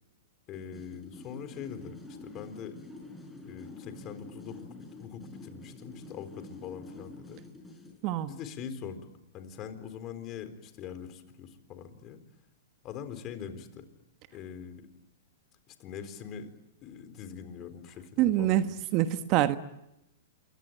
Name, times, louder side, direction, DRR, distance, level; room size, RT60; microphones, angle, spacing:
voice 1, 0.5-2.8 3.4-4.7 5.0-7.4 8.3-9.0 9.3-12.2 12.8-13.8 14.3-14.9 15.7-16.5 16.8-18.7, left 8 dB, 35° left, 4.1 m, -42 dB
sound 1, 0.5-8.0, left 2 dB, 5° left, 6.1 m, -47 dB
voice 2, 18.2-19.6, right 13 dB, 40° right, 1.3 m, -25 dB
28.0 x 23.0 x 9.0 m
hypercardioid pair, 125°, 0 cm